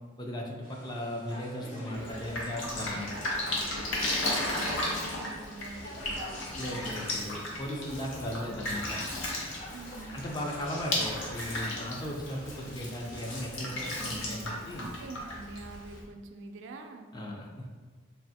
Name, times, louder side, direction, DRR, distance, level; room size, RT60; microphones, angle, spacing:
voice 1, 0.2-3.1 6.6-9.1 10.1-14.9 17.1-17.7, equal, 20° left, 0 dB, 0.4 m, -37 dB
sound 1, 0.6-16.0, left 1 dB, 45° left, 0.7 m, -49 dB
sound 2, 1.3-5.0 5.3-8.2, left 1 dB, 65° left, 1.2 m, -47 dB
Drip, 1.9-16.0, left 1 dB, 85° left, 0.7 m, -35 dB
voice 2, 1.9-6.4 9.7-10.2 14.0-17.1, right 3 dB, 75° right, 5 dB, 0.3 m, -46 dB
3.3 x 2.4 x 2.7 m, 1.5 s
head